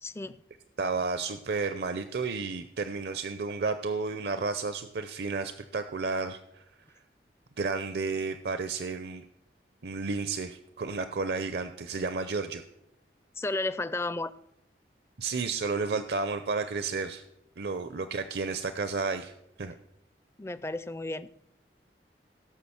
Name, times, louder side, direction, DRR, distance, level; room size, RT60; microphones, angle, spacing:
voice 1, 0.0-0.4 13.4-14.3 20.4-21.3, left 2 dB, 15° left, 15 dB, 0.4 m, -33 dB
voice 2, 0.8-6.6 7.6-9.2 9.8-12.6 15.2-17.2 17.6-19.3 19.6-19.7, right 4 dB, 65° right, 10 dB, 0.6 m, -32 dB
16.5 x 5.9 x 7.1 m, 0.82 s
head